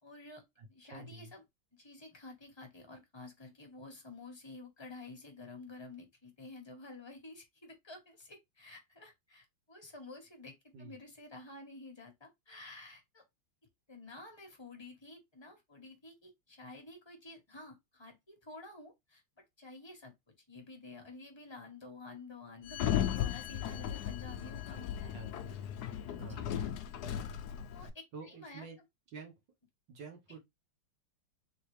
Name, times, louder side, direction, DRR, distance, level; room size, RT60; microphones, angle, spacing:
voice 1, 0.0-0.4 0.7-1.4 1.7-13.2 13.9-19.2 19.6-20.1 20.5-25.1 26.3-26.4 27.7-28.7, left 3 dB, 20° left, 0.7 m, -51 dB
voice 2, 0.6-1.3 10.7-11.0 24.7-24.8 25.1-25.3 26.2-26.5 28.1-28.8 29.1-29.3 29.9-30.4, right 4 dB, 60° right, 1.7 m, -48 dB
Sliding door, 22.7-27.9, left 10 dB, 75° left, 0.9 m, -36 dB
3.8 x 3.7 x 3.2 m
omnidirectional pair, 2.3 m